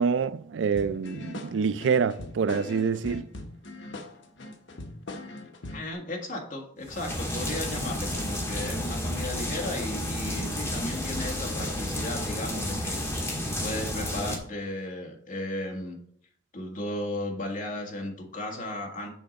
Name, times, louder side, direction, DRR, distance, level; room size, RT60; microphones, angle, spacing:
voice 1, 0.0-3.3, right 6 dB, 90° right, 0.4 m, -26 dB
sound 1, 0.7-5.9, left 2 dB, 80° left, 1.0 m, -41 dB
voice 2, 5.7-16.0 16.5-19.1, left 1 dB, 45° left, 1.8 m, -35 dB
sound 2, 6.8-14.4, left 1 dB, 15° left, 1.6 m, -31 dB
7.2 x 4.6 x 5.2 m
head